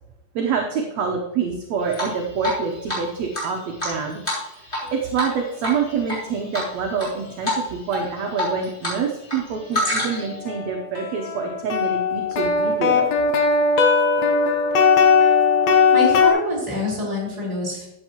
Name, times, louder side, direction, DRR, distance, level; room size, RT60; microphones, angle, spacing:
voice 1, 0.4-4.2 4.5-13.1, right 6 dB, 70° right, 1 dB, 1.8 m, -26 dB
Drip, 1.9-2.6 2.9-3.0 3.3-4.9 5.1-5.3 5.6-6.2 6.5-7.1 7.4-7.6 7.9-9.0 9.2-10.3, left 1 dB, 15° left, 3.4 m, -26 dB
sound 1, 9.8-9.9 10.5-16.3, left 5 dB, 65° left, 1.9 m, -18 dB
voice 2, 15.9-17.9, left 1 dB, 10° right, -6 dB, 3.9 m, -25 dB
13.5 x 8.4 x 3.0 m, 0.91 s
omnidirectional pair, 3.9 m